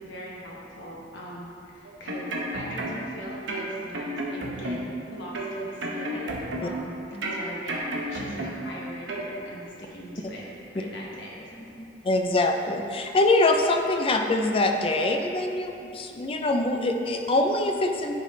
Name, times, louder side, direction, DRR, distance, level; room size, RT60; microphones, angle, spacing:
voice 1, 0.0-4.8 5.1-6.3 6.6-10.5 10.7-11.9, equal, 75° left, -4 dB, 1.2 m, -41 dB
sound 1, 1.8-3.1 3.5-5.0 5.3-6.9 7.2-8.7 9.1-9.3, right 1 dB, 75° right, 0.9 m, -32 dB
voice 2, 12.1-18.1, left 2 dB, 30° left, 4 dB, 0.4 m, -24 dB
9.8 x 3.9 x 3.2 m, 2.5 s
head